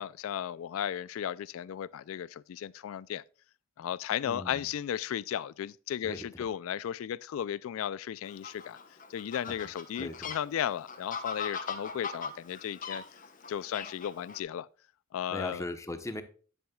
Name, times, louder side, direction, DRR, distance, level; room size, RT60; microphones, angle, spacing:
voice 1, 0.0-3.2 3.8-8.8 9.1-13.0 13.5-14.7 15.1-15.6, left 9 dB, 85° left, 0.3 m, -35 dB
voice 2, 4.2-4.7 6.0-6.5 10.0-10.3 15.3-16.2, left 1 dB, 15° left, 0.9 m, -39 dB
Fowl, 8.2-14.4, left 5 dB, 40° left, 1.1 m, -41 dB
9.9 x 7.9 x 2.3 m
head